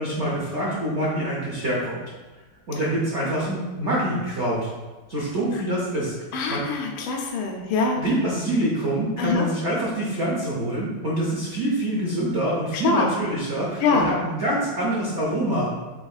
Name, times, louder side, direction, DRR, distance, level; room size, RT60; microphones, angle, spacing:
voice 1, 0.0-2.0 2.7-4.7 5.1-6.1 6.4-6.6 8.0-15.7, right 1 dB, 85° right, -5 dB, 0.6 m, -25 dB
voice 2, 6.3-8.0 9.2-9.4 12.7-13.1 13.8-14.1, left 4 dB, 75° left, 1 dB, 1.2 m, -24 dB
7.6 x 2.8 x 2.3 m, 1.2 s
omnidirectional pair, 2.4 m